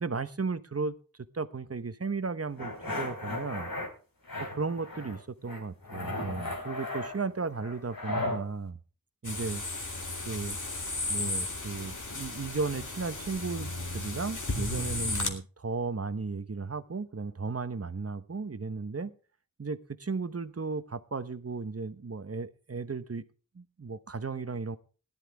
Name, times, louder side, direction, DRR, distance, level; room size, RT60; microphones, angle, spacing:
voice 1, 0.0-3.7 4.6-8.8 9.2-9.6 10.3-10.6 11.1-19.1 19.6-23.2 23.5-24.8, right 4 dB, 45° right, 1.0 m, -35 dB
sound 1, 2.6-3.9 4.3-5.2 5.5-8.4, left 2 dB, 85° left, 3.9 m, -36 dB
sound 2, 9.2-15.3, left 2 dB, 60° left, 2.5 m, -34 dB
16.5 x 11.5 x 3.5 m
wide cardioid pair, 45°, 34 cm